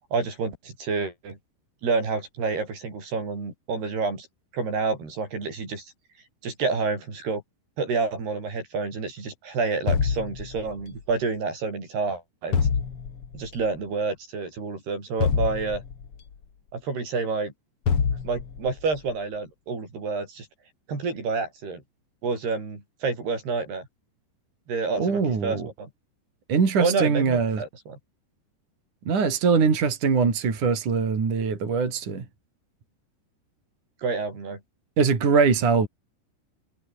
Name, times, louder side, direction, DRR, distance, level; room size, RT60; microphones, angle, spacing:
voice 1, 0.1-1.4 1.8-4.3 4.5-5.9 6.4-7.4 7.8-12.6 13.3-15.8 16.7-17.5 18.2-20.5 20.9-21.8 22.2-23.9 24.7-25.9 26.8-28.0 34.0-34.6, right 4 dB, 65° right, 9.6 m, -29 dB
sound 1, 9.9-11.0 12.5-13.5 15.2-16.3 17.9-18.8, left 6 dB, 40° left, 2.9 m, -26 dB
voice 2, 25.0-25.7 26.5-27.6 29.1-32.3 35.0-35.9, right 5 dB, 45° right, 5.6 m, -22 dB
omnidirectional pair, 4.9 m